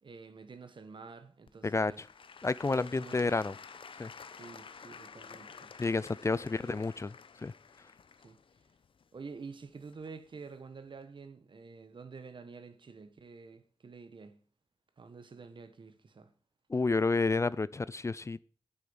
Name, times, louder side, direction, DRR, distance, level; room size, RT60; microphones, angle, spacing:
voice 1, 0.0-2.0 2.7-3.6 4.3-5.7 6.2-6.8 8.2-8.4 9.1-14.4 15.0-16.3, right 4 dB, 65° right, 1.4 m, -49 dB
Applause / Crowd, 1.5-10.3 11.0-11.1, left 6 dB, 70° left, 0.8 m, -51 dB
voice 2, 1.6-2.1 2.4-3.5 4.0-4.1 5.8-7.1 7.4-7.5 16.7-18.4, left 3 dB, 30° left, 0.4 m, -30 dB
8.7 x 8.2 x 7.1 m
cardioid pair, 65°, 9 cm